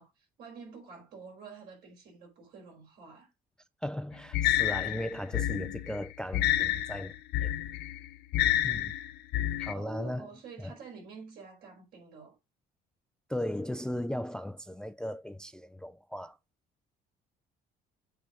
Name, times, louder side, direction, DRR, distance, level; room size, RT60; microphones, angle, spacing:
voice 1, 0.0-3.3 9.7-12.4, right 4 dB, 75° right, 5.1 m, -48 dB
voice 2, 3.8-7.1 7.4-7.5 8.6-8.9 9.6-10.3 10.6-10.7 13.3-16.4, left 1 dB, 5° left, 0.3 m, -37 dB
sound 1, 4.3-9.7, left 13 dB, 75° left, 0.7 m, -29 dB
8.1 x 3.4 x 6.4 m
cardioid pair, 110°, 17 cm